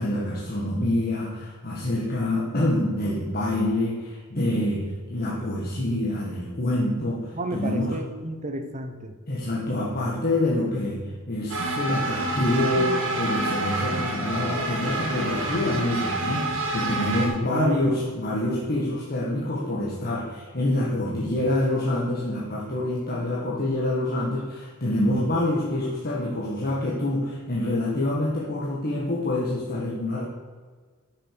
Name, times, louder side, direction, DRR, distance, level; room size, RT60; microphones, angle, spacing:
voice 1, 0.0-7.9 9.3-30.2, left 1 dB, 45° left, -5 dB, 1.6 m, -26 dB
voice 2, 7.3-9.2 17.4-17.8, right 2 dB, 35° right, 6 dB, 0.9 m, -31 dB
sound 1, 11.5-17.3, right 2 dB, 60° right, 1.7 m, -28 dB
9.0 x 6.9 x 6.6 m, 1.5 s
head